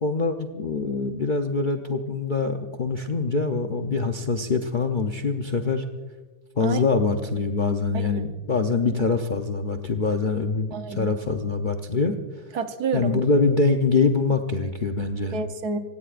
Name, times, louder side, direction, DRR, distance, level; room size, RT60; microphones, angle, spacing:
voice 1, 0.0-5.8 6.6-12.1 12.9-15.4, left 4 dB, 50° left, 6 dB, 0.6 m, -24 dB
voice 2, 10.7-11.1 12.5-13.2 15.3-15.8, right 4 dB, 65° right, 8 dB, 1.5 m, -29 dB
26.5 x 17.0 x 2.5 m, 1.3 s
omnidirectional pair, 1.8 m